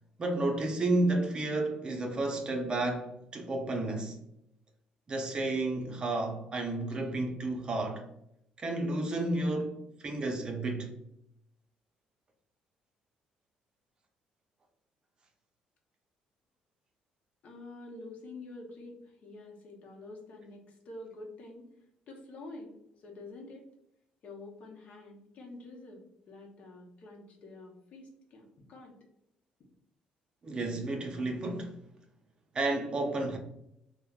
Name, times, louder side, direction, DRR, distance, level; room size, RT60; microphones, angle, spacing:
voice 1, 0.2-4.2 5.1-8.1 8.6-10.9 30.4-31.8 32.5-33.4, right 2 dB, 35° right, 0.5 m, -31 dB
voice 2, 17.4-21.7 22.1-23.6 24.2-26.0 26.3-29.0, left 2 dB, 55° left, 0.7 m, -47 dB
3.2 x 2.0 x 2.3 m
cardioid pair, 105°, 3 cm